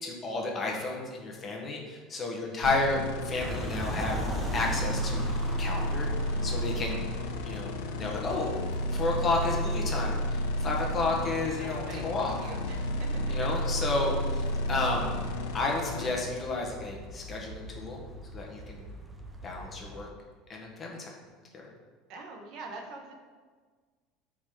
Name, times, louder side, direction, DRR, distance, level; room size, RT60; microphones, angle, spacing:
voice 1, 0.0-4.2 4.5-5.3 5.6-6.1 6.4-7.0 7.4-8.5 8.9-12.3 13.3-15.1 15.5-18.0 18.3-18.8 19.4-20.1 20.5-21.2 21.5-21.7, left 3 dB, 25° left, -1 dB, 1.6 m, -32 dB
sound 1, 2.6-16.1, left 1 dB, 85° left, 1.1 m, -32 dB
sound 2, 3.4-20.1, right 1 dB, 10° right, 0.8 m, -41 dB
voice 2, 11.2-12.1 12.4-13.5 22.1-23.2, right 3 dB, 50° right, 1 dB, 1.5 m, -45 dB
13.5 x 5.0 x 4.0 m, 1.5 s
cardioid pair, 155°, 0 cm